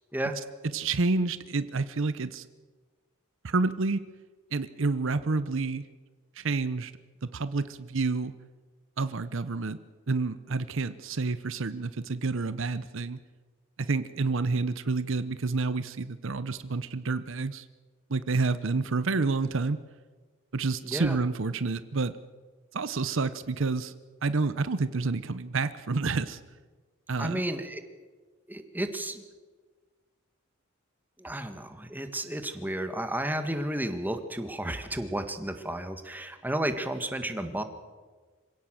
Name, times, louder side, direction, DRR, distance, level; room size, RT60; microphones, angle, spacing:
voice 1, 0.7-2.5 3.4-4.0 4.5-5.8 6.4-6.9 7.3-8.3 9.0-9.8 10.1-13.2 13.8-17.6 18.1-19.8 20.5-22.2 22.7-23.9 24.2-26.4 27.1-27.4, right 3 dB, 65° right, 14 dB, 0.8 m, -29 dB
voice 2, 20.8-21.2 27.2-27.8 28.5-29.2 31.2-37.6, right 1 dB, 10° right, 8 dB, 1.6 m, -32 dB
26.0 x 17.0 x 7.6 m, 1.4 s
head